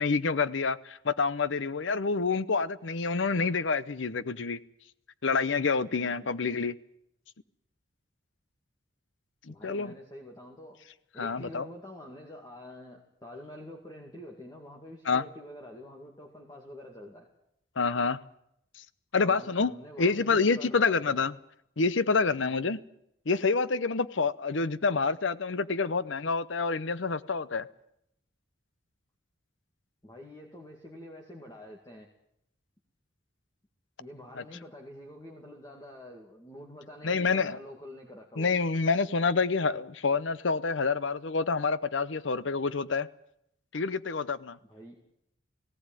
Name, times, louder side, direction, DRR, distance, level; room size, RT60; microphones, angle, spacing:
voice 1, 0.0-4.6 5.2-6.7 9.5-9.9 11.2-11.6 15.1-15.2 17.8-18.2 19.1-19.7 20.0-21.3 21.8-22.8 23.3-27.7 34.4-34.5 37.0-37.6 38.4-43.1 43.7-44.6, left 4 dB, 80° left, 0.8 m, -27 dB
voice 2, 6.0-6.3 9.5-10.8 11.1-17.3 19.2-21.2 30.0-32.1 34.0-38.5 44.6-45.0, left 1 dB, 20° left, 2.3 m, -47 dB
18.0 x 17.0 x 9.1 m
head